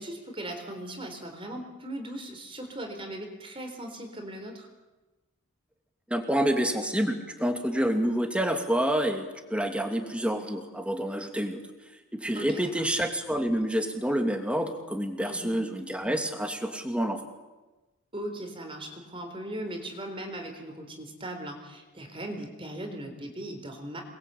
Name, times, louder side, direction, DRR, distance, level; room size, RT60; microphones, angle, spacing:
voice 1, 0.0-4.7 12.3-12.9 15.3-15.6 18.1-24.0, right 1 dB, 25° right, 4 dB, 4.0 m, -38 dB
voice 2, 6.1-11.6 12.1-17.2, right 1 dB, 5° right, 4 dB, 2.7 m, -28 dB
28.5 x 22.0 x 8.5 m, 1.2 s
head